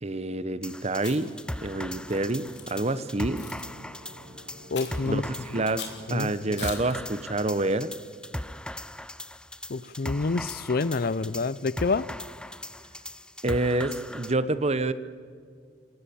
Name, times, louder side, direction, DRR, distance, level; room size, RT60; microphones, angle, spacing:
voice 1, 0.0-1.3 1.6-3.4 5.0-7.9 13.4-14.9, right 2 dB, 40° right, 14 dB, 0.9 m, -28 dB
sound 1, 0.6-14.3, left 1 dB, 5° left, 0.6 m, -39 dB
Chewing mastication, 0.9-1.4 2.1-2.7 3.4-3.6 4.7-5.1 5.8-6.0 6.6-6.9, left 7 dB, 80° left, 3.2 m, -40 dB
sound 2, 1.6-6.9, right 1 dB, 90° right, 3.6 m, -49 dB
voice 2, 4.7-5.2 6.1-6.3 9.7-12.0, left 3 dB, 55° left, 20 dB, 0.6 m, -27 dB
29.0 x 18.0 x 8.6 m, 2.1 s
head